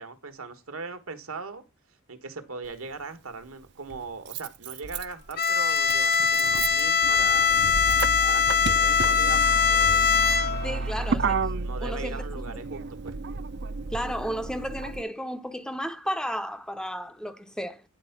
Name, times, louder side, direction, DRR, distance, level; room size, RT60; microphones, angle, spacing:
voice 1, 0.0-1.6 2.1-7.8 8.2-11.2 11.6-13.2, right 4 dB, 75° right, 1.4 m, -40 dB
Motor vehicle (road), 2.6-2.7 3.9-15.0, right 4 dB, 55° right, 0.5 m, -32 dB
Bowed string instrument, 5.4-10.8, left 6 dB, 50° left, 1.1 m, -22 dB
voice 2, 10.6-11.4 11.8-12.2 13.9-17.8, equal, 5° left, 0.6 m, -33 dB
9.8 x 4.5 x 5.8 m
head